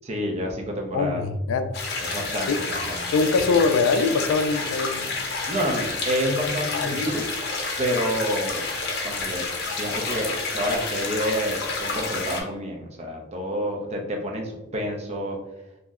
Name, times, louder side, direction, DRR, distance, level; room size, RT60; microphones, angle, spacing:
voice 1, 0.0-1.2 2.0-2.5 2.9-3.1 5.5-7.3 7.8-8.6 9.0-15.4, equal, 30° right, 1 dB, 0.5 m, -28 dB
voice 2, 0.9-1.7 2.5-2.6 3.1-5.3 6.7-7.0, left 4 dB, 85° left, 9 dB, 0.3 m, -23 dB
sound 1, 1.7-12.4, left 3 dB, 55° left, 0.7 m, -29 dB
2.6 x 2.0 x 3.5 m, 0.93 s
head